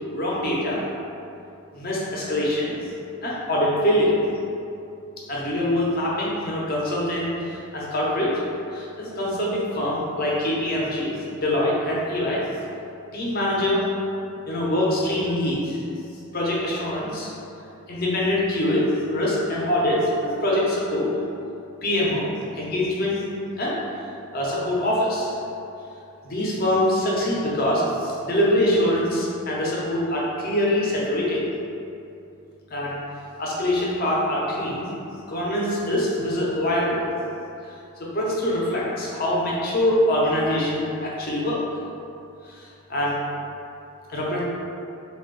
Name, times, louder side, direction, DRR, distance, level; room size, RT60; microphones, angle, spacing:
voice 1, 0.1-0.8 1.7-2.8 3.2-4.2 5.3-8.4 8.7-12.4 13.1-13.8 14.5-15.8 16.3-17.3 17.9-21.1 21.8-23.2 23.6-23.8 24.3-25.4 26.2-31.4 32.7-33.0 33.4-34.9 35.3-37.0 37.6-41.7 42.4-43.2 44.1-44.4, left 1 dB, 45° left, -5 dB, 0.7 m, -24 dB
3.3 x 2.4 x 3.7 m, 2.7 s
head